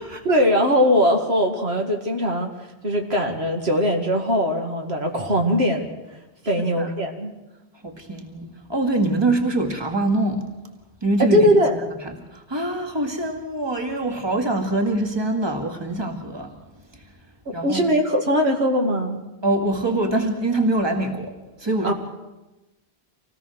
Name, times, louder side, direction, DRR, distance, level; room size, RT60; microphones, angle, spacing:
voice 1, 0.3-2.5 2.8-5.9 6.5-7.3 11.3-11.8 17.6-19.2 21.8-21.9, equal, 70° right, 2.3 m, -20 dB
voice 2, 7.8-10.5 11.0-16.5 16.9-17.0 17.5-17.9 19.4-21.9, right 2 dB, 25° right, 2.2 m, -24 dB
26.0 x 17.5 x 6.4 m
omnidirectional pair, 1.1 m